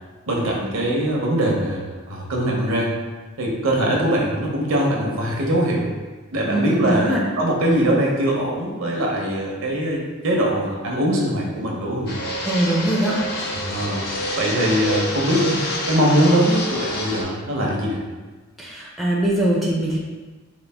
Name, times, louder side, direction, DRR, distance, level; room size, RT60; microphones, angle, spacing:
voice 1, 0.3-3.0 3.4-5.9 6.3-12.2 13.5-14.0 14.4-15.6 15.9-18.0, right 1 dB, 65° right, -2 dB, 0.8 m, -22 dB
voice 2, 6.5-7.2 12.4-13.2 18.6-20.0, right 1 dB, ahead, -5 dB, 0.5 m, -22 dB
Fixed-wing aircraft airplane, 12.1-17.2, left 1 dB, 50° left, 0.6 m, -27 dB
3.9 x 2.5 x 3.4 m, 1.3 s
head